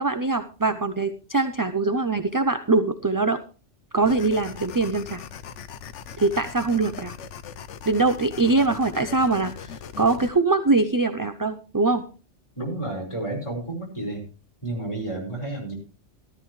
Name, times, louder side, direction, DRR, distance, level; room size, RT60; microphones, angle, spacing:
voice 1, 0.0-3.4 3.9-5.2 6.2-7.1 7.9-12.0, right 3 dB, 25° right, 10 dB, 0.5 m, -23 dB
sound 1, 4.0-10.3, left 7 dB, 85° left, 1.1 m, -40 dB
voice 2, 12.6-14.2 14.6-15.7, right 2 dB, 25° left, 0 dB, 5.3 m, -31 dB
14.0 x 13.5 x 3.2 m, 0.35 s
omnidirectional pair, 1.2 m